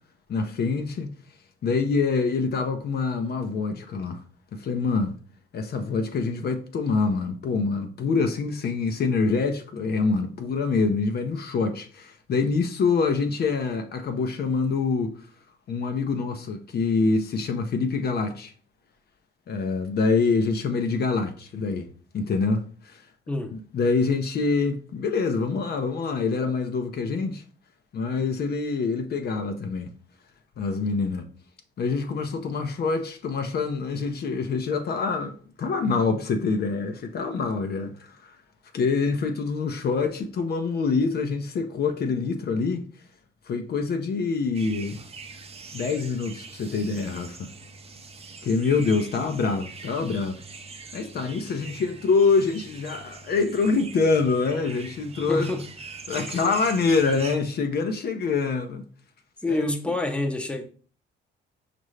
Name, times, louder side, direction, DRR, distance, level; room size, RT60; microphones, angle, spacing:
voice 1, 0.3-1.1 1.6-4.2 4.5-5.1 5.5-15.1 15.7-18.5 19.5-21.9 22.1-23.0 23.5-27.4 27.9-29.9 30.6-31.3 31.8-38.4 38.7-42.8 43.5-45.0 45.7-47.5 48.4-50.4 50.9-55.5 56.1-58.8 59.5-59.7, left 4 dB, 55° left, 0.6 m, -25 dB
sound 1, 44.5-57.4, right 4 dB, 30° right, 0.6 m, -42 dB
voice 2, 55.3-55.7 59.4-60.6, left 2 dB, 5° left, 0.7 m, -27 dB
5.3 x 2.5 x 3.2 m
cardioid pair, 90°, 20 cm